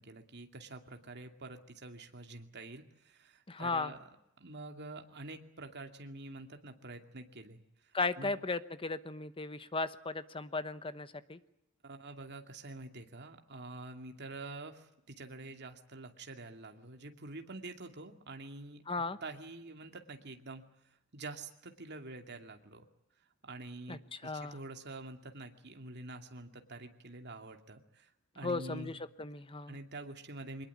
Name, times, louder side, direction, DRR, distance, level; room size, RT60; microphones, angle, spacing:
voice 1, 0.0-4.1 4.4-8.3 11.8-18.8 19.2-22.8 23.4-28.9 29.7-30.7, right 2 dB, 50° right, 5 dB, 2.5 m, -47 dB
voice 2, 3.5-3.9 7.9-11.4 18.9-19.2 23.9-24.6 28.4-29.8, left 3 dB, 25° left, 13 dB, 1.0 m, -36 dB
23.5 x 20.5 x 8.6 m, 0.84 s
head